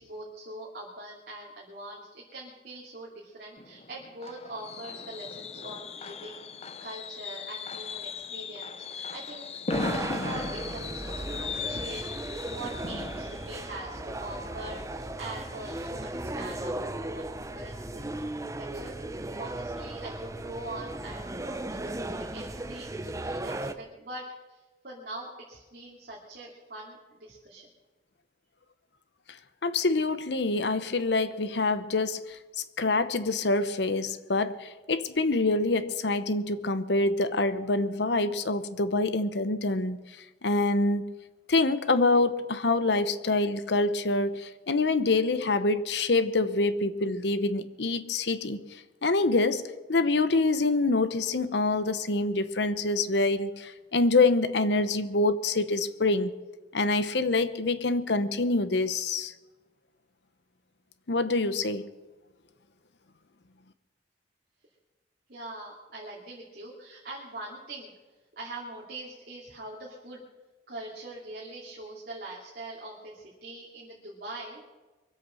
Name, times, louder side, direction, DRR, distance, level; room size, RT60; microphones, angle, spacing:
voice 1, 0.0-6.5 6.8-9.5 9.8-12.0 12.5-18.2 18.6-18.9 19.4-21.6 22.0-24.2 24.5-27.7 65.3-67.9 68.3-70.2 70.7-74.6, right 2 dB, 55° right, -4 dB, 2.7 m, -43 dB
Fireworks, 3.6-15.3 15.6-15.9 16.2-16.3, left 4 dB, 35° left, 0.6 m, -38 dB
sound 1, 9.7-23.7, right 1 dB, 15° right, 0.7 m, -36 dB
voice 2, 29.6-32.4 32.8-40.0 40.4-41.0 41.5-48.6 49.0-56.3 56.7-59.3 61.1-61.9, left 3 dB, 65° left, 12 dB, 0.9 m, -26 dB
23.0 x 8.2 x 6.4 m, 1.2 s
head